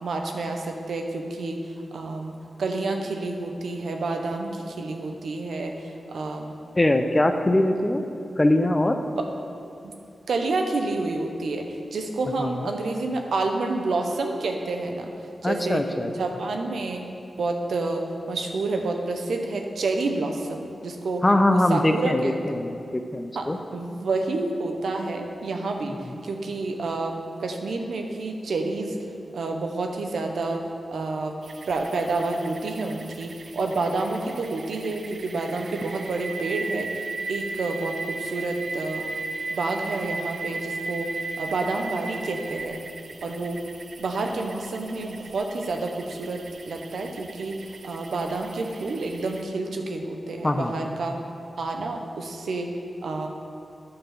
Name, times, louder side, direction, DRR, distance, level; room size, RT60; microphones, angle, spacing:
voice 1, 0.0-6.5 9.1-9.3 9.8-9.9 10.3-15.1 15.4-17.1 17.4-21.2 21.5-22.3 23.3-27.1 27.4-29.0 29.3-31.4 31.7-37.0 37.3-39.0 39.5-42.8 43.2-43.6 44.0-51.2 51.6-52.7 53.0-53.3, right 3 dB, 90° right, 3 dB, 0.7 m, -29 dB
voice 2, 6.8-8.0 8.4-9.0 12.4-12.7 15.4-16.1 21.2-23.6 50.4-50.7, left 1 dB, 20° left, 7 dB, 0.5 m, -22 dB
sound 1, 31.4-49.4, right 3 dB, 60° right, 0.4 m, -37 dB
9.7 x 3.8 x 6.8 m, 2.5 s
wide cardioid pair, 115°, 0 cm